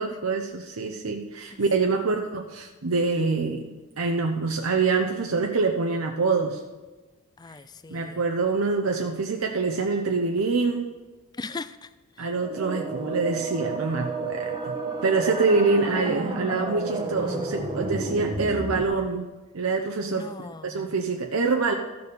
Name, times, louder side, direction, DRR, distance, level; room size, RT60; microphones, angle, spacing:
voice 1, 0.0-3.7 4.0-6.6 7.9-10.9 12.2-14.8 15.0-19.3 19.5-20.3 20.6-21.7, right 4 dB, 80° right, 3 dB, 0.8 m, -25 dB
voice 2, 1.5-2.1 7.4-8.2 11.4-11.9 12.2-12.3 20.1-20.9, left 3 dB, 20° left, 14 dB, 0.4 m, -39 dB
sound 1, 12.4-18.8, right 3 dB, 20° right, 1.0 m, -31 dB
13.5 x 6.9 x 5.3 m, 1.2 s
head